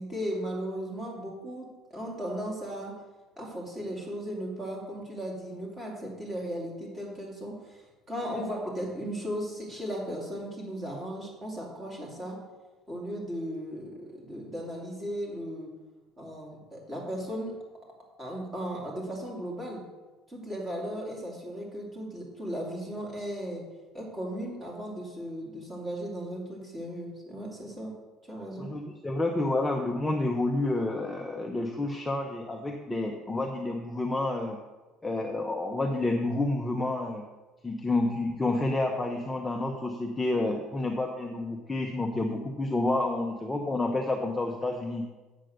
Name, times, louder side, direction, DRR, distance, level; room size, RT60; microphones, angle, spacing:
voice 1, 0.0-2.9 3.4-12.4 12.9-15.7 16.2-17.6 18.2-19.8 20.3-23.6 23.9-27.9 28.3-28.7, equal, 15° right, -3 dB, 2.8 m, -36 dB
voice 2, 28.6-34.6 35.0-37.2 37.6-45.0, left 2 dB, 10° left, 2 dB, 0.7 m, -29 dB
8.2 x 7.6 x 6.5 m, 1.2 s
cardioid pair, 165°, 0 cm